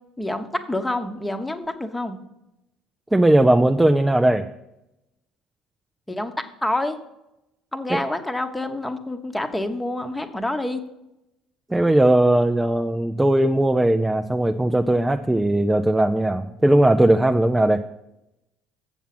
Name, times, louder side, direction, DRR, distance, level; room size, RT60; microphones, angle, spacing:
voice 1, 0.2-2.2 6.1-6.3 6.6-7.0 7.7-10.8, left 1 dB, 10° left, 7 dB, 1.0 m, -27 dB
voice 2, 3.1-4.5 7.9-8.0 11.7-17.8, right 1 dB, 10° right, 6 dB, 0.5 m, -18 dB
7.3 x 7.2 x 5.9 m, 0.89 s
supercardioid pair, 100°, 0 cm